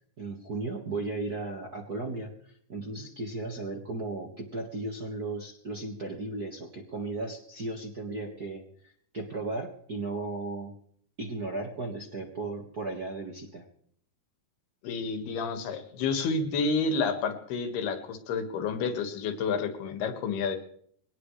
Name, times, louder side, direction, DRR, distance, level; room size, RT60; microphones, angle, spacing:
voice 1, 0.2-10.7 11.2-13.7, right 2 dB, 45° right, 0 dB, 1.2 m, -36 dB
voice 2, 14.8-20.6, left 4 dB, 85° left, 7 dB, 3.8 m, -30 dB
22.5 x 18.5 x 3.3 m, 0.64 s
omnidirectional pair, 4.4 m